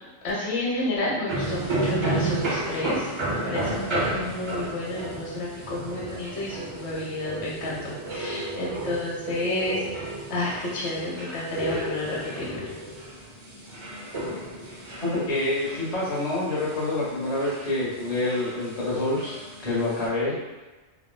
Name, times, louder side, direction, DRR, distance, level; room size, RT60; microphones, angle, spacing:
voice 1, 0.2-12.7, left 2 dB, 70° left, -5 dB, 1.1 m, -31 dB
sound 1, 1.3-20.1, right 2 dB, 45° right, 0.4 m, -33 dB
voice 2, 15.0-20.3, left 2 dB, 35° left, -8 dB, 1.0 m, -27 dB
3.5 x 2.1 x 2.2 m, 1.2 s
omnidirectional pair, 1.2 m